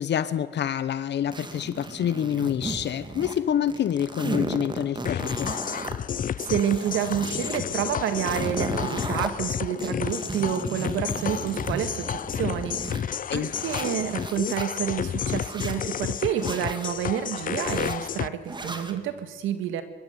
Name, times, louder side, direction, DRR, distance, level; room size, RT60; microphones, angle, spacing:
voice 1, 0.0-5.5 13.3-13.5, left 9 dB, 60° left, 15 dB, 1.0 m, -27 dB
sound 1, 1.3-3.4 3.7-6.0 6.4-7.6 8.0-9.3 9.8-13.0 13.5-14.7 15.2-15.8 16.3-16.9 17.5-18.0 18.5-19.0, right 2 dB, 20° right, 2.2 m, -35 dB
sound 2, 5.1-18.3, left 8 dB, 45° left, 0.6 m, -31 dB
voice 2, 6.5-19.8, right 10 dB, 90° right, 10 dB, 2.0 m, -29 dB
23.5 x 13.5 x 9.4 m, 1.3 s
cardioid pair, 90°, 20 cm